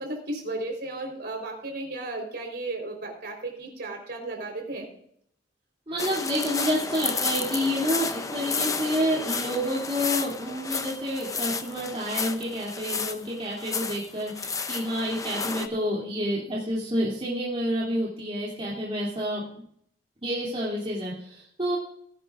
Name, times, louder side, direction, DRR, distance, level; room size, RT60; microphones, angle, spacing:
voice 1, 0.0-4.9, right 2 dB, 60° right, 2 dB, 4.4 m, -34 dB
voice 2, 5.9-19.4 20.2-21.8, equal, 30° right, -6 dB, 3.0 m, -29 dB
sound 1, 6.0-15.7, left 5 dB, 20° left, 0.7 m, -32 dB
20.0 x 11.0 x 2.6 m, 0.67 s
head